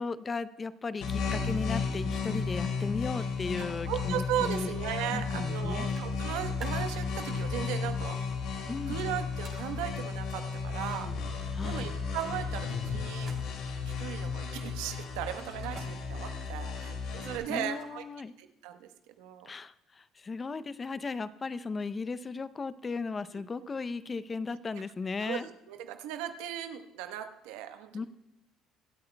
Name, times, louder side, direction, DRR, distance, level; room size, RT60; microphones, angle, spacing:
voice 1, 0.0-4.7 5.1-5.9 8.7-9.0 11.5-12.0 17.2-18.3 19.5-25.5 27.9-28.1, left 4 dB, 25° left, 15 dB, 0.6 m, -36 dB
sound 1, 1.0-17.4, left 5 dB, 75° left, 2.8 m, -34 dB
voice 2, 3.6-8.2 8.9-11.1 11.6-13.3 13.8-18.0 18.4-19.5 23.3-23.4 25.2-28.1, right 11 dB, 85° right, 7 dB, 1.0 m, -37 dB
sound 2, 5.5-5.6 5.9-7.7 9.4-9.6 13.2-13.7 15.5-15.9 17.2-18.1, right 6 dB, 45° right, 2.6 m, -49 dB
25.5 x 8.5 x 2.2 m, 0.91 s
supercardioid pair, 95°, 0 cm